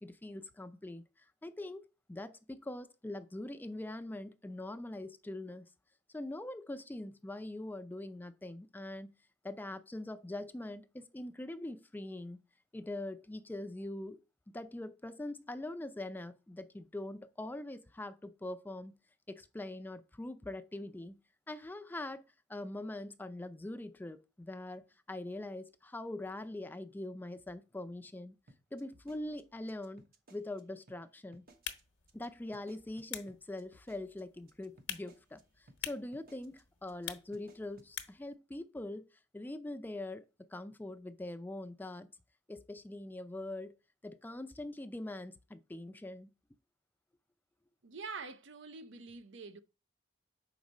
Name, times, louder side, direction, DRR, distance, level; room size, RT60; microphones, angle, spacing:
voice 1, 0.0-5.7 6.1-9.1 9.4-12.4 12.7-14.2 14.5-18.9 19.3-21.2 21.5-22.2 22.5-28.4 28.7-30.0 30.3-31.4 32.1-39.0 39.3-40.2 40.5-42.1 42.5-43.8 44.0-46.3, left 1 dB, 10° left, 0.4 m, -43 dB
sound 1, 28.5-30.6 30.9-31.0 31.3-31.8 32.1-32.3 32.5-35.4 35.7-35.8 36.1-36.6 36.9-37.1 37.3-37.9, right 1 dB, 55° right, 1.0 m, -61 dB
sound 2, 31.5-38.3, left 10 dB, 80° left, 0.9 m, -48 dB
voice 2, 47.8-49.6, right 4 dB, 70° right, 0.7 m, -45 dB
6.1 x 4.9 x 4.1 m
head